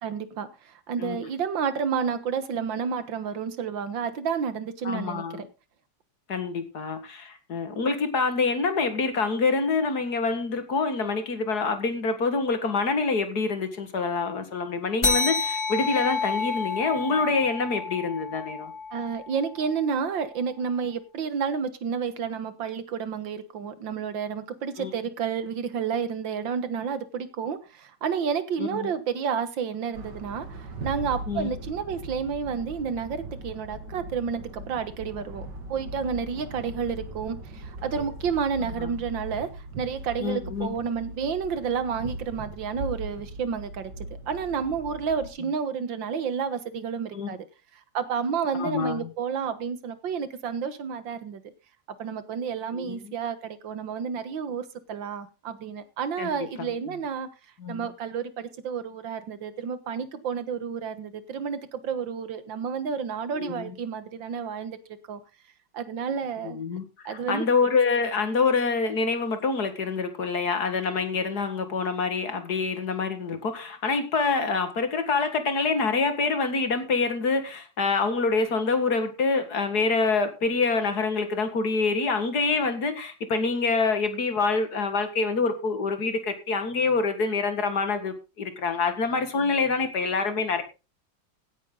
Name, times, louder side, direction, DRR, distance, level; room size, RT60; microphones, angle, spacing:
voice 1, 0.0-5.5 18.9-43.9 44.3-47.5 47.9-51.4 52.0-57.3 57.7-64.8 65.1-65.2 65.7-66.6 67.1-67.5, right 6 dB, 90° right, 2.1 m, -30 dB
voice 2, 4.8-5.5 6.3-18.7 24.8-24.9 28.6-28.9 31.3-31.5 38.6-38.9 40.2-40.7 47.1-47.4 48.6-49.1 52.7-53.1 56.2-56.3 57.6-57.9 63.3-63.7 66.4-90.6, left 4 dB, 55° left, 2.4 m, -26 dB
sound 1, 15.0-19.9, left 4 dB, 20° left, 1.2 m, -30 dB
sound 2, 29.9-45.3, right 2 dB, 65° right, 2.9 m, -39 dB
16.5 x 9.8 x 3.9 m
omnidirectional pair, 2.0 m